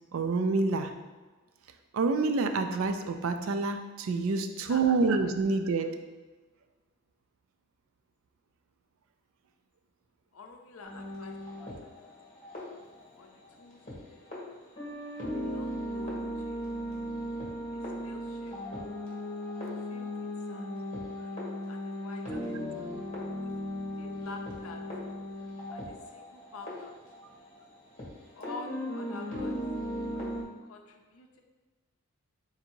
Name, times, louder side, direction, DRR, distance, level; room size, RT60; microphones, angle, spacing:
voice 1, 0.1-0.9 1.9-6.0, right 3 dB, 65° right, 7 dB, 0.4 m, -27 dB
voice 2, 4.6-5.3 10.3-12.1 13.2-14.3 15.3-16.7 17.7-18.7 19.9-20.7 21.7-22.6 24.0-24.8 25.7-26.9 28.3-29.6 30.6-31.4, left 4 dB, 70° left, 3 dB, 0.5 m, -48 dB
sound 1, 10.8-14.0 14.3-14.4 14.8-28.1 28.4-30.4, equal, 30° left, 1.2 m, -37 dB
4.0 x 2.7 x 4.4 m, 1.3 s
head